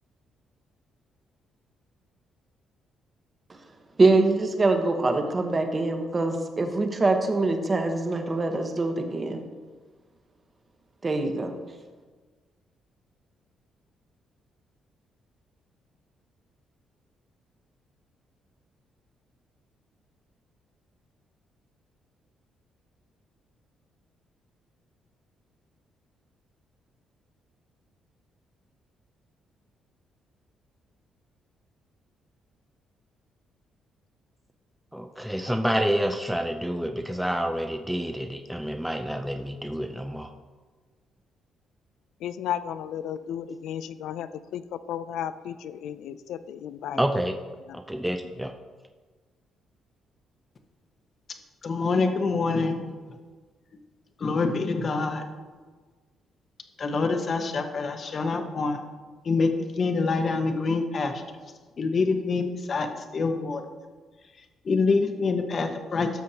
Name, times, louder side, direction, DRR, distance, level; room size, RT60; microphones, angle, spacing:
voice 1, 4.0-9.4 11.0-11.5, right 3 dB, 30° right, 5 dB, 1.1 m, -24 dB
voice 2, 34.9-40.3 46.9-47.4 47.7-48.5, equal, 5° right, 5 dB, 0.5 m, -28 dB
voice 3, 42.2-47.0 47.7-47.8, left 10 dB, 85° left, 13 dB, 0.4 m, -34 dB
voice 4, 51.6-52.8 54.2-55.2 56.8-58.8 59.2-61.2 61.8-63.6 64.6-66.2, left 4 dB, 45° left, 6 dB, 1.0 m, -26 dB
13.0 x 6.3 x 2.8 m, 1.4 s
cardioid pair, 90°, 0 cm